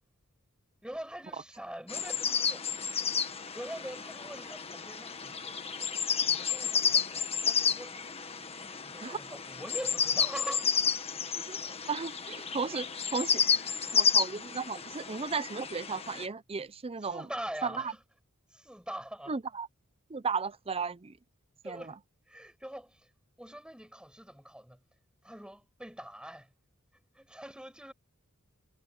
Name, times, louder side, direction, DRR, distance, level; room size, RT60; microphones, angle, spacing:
voice 1, 0.8-2.6 3.5-5.9 6.3-8.1 8.6-10.7 13.5-14.0 17.0-18.0 18.5-19.3 21.6-22.0 22.3-23.1 23.4-24.8 25.2-26.5 27.2-27.9, right 1 dB, 5° right, 7.5 m, -43 dB
sound 1, 1.9-16.3, left 7 dB, 30° left, 1.5 m, -31 dB
voice 2, 11.3-13.4 13.9-17.3 17.6-17.9 19.3-19.7 20.1-21.1 21.6-21.9, right 5 dB, 25° right, 0.6 m, -35 dB
head